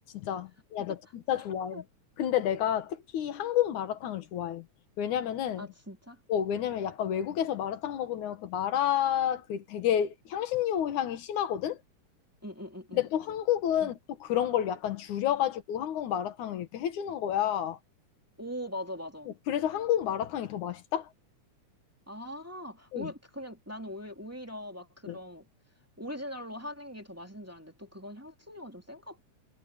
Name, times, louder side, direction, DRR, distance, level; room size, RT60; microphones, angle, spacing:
voice 1, 0.1-1.8 2.2-4.7 5.0-5.7 6.3-11.8 12.9-17.8 19.3-21.1 22.9-23.1 25.1-25.2, left 10 dB, 75° left, 2.9 m, -30 dB
voice 2, 5.6-6.2 12.4-13.0 13.8-13.9 18.4-19.3 22.1-25.5 26.0-29.2, equal, 5° right, 2.0 m, -41 dB
omnidirectional pair, 3.5 m